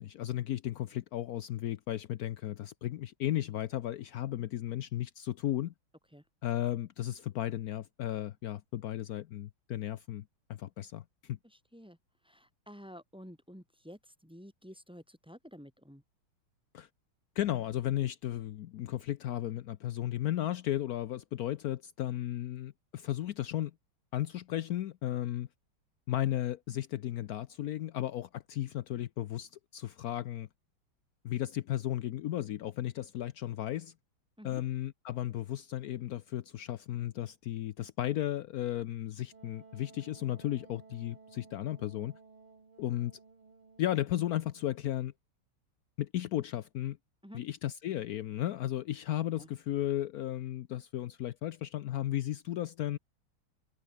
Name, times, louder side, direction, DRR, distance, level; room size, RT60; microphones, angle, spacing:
voice 1, 0.0-5.7 6.4-10.2 10.5-11.4 16.7-16.9 17.4-23.7 24.1-25.5 26.1-30.5 31.2-33.9 34.4-42.1 42.8-43.1 43.8-45.1 46.0-47.0 47.3-53.0, left 13 dB, 80° left, 0.8 m, -34 dB
voice 2, 11.4-12.0 12.2-16.0 34.4-34.6 47.2-47.4 49.4-49.5, equal, ahead, 3.2 m, -51 dB
Wind instrument woodwind instrument, 39.3-44.8, right 4 dB, 75° right, 5.1 m, -57 dB
omnidirectional pair, 2.4 m